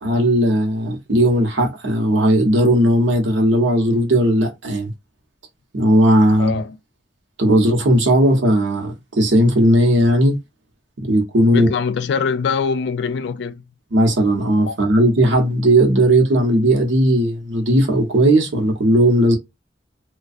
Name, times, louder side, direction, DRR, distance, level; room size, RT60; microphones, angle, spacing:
voice 1, 0.0-4.9 5.7-6.5 7.4-10.4 11.0-11.7 13.9-19.4, right 1 dB, 80° right, 0.9 m, -16 dB
voice 2, 6.4-6.8 11.5-13.6 14.7-14.8, left 5 dB, 65° left, 0.3 m, -23 dB
2.5 x 2.3 x 2.4 m
head